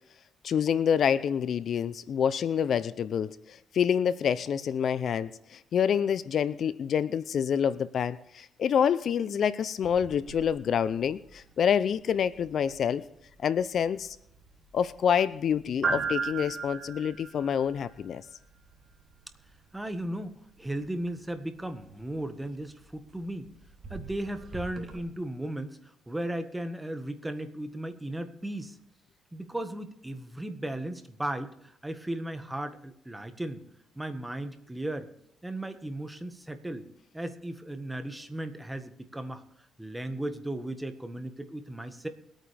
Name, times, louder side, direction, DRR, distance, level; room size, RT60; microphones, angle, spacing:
voice 1, 0.4-13.0 13.4-14.2 14.7-18.2, left 8 dB, 60° left, 16 dB, 0.6 m, -27 dB
sound 1, 9.8-25.0, right 5 dB, 45° right, 3.3 m, -40 dB
voice 2, 19.7-23.5 23.9-28.8 29.3-33.6 33.9-35.1 35.4-36.9 37.1-39.4 39.8-42.1, right 1 dB, 10° right, 9 dB, 1.6 m, -36 dB
22.5 x 9.0 x 3.5 m, 0.78 s
cardioid pair, 90°, 0 cm